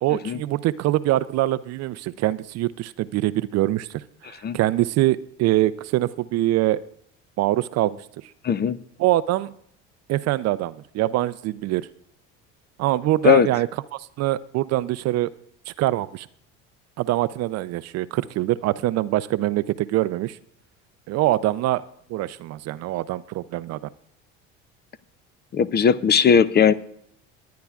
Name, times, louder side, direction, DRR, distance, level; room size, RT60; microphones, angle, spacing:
voice 1, 0.0-6.8 7.4-8.0 9.0-9.5 10.1-11.9 12.8-13.7 14.2-15.3 15.7-16.3 17.0-20.4 21.1-21.8 22.1-23.8, right 15 dB, 55° right, 16 dB, 0.5 m, -24 dB
voice 2, 8.4-8.8 13.2-13.5 25.5-26.7, left 7 dB, 30° left, 15 dB, 0.6 m, -18 dB
21.0 x 9.4 x 2.4 m, 0.68 s
supercardioid pair, 90°, 31 cm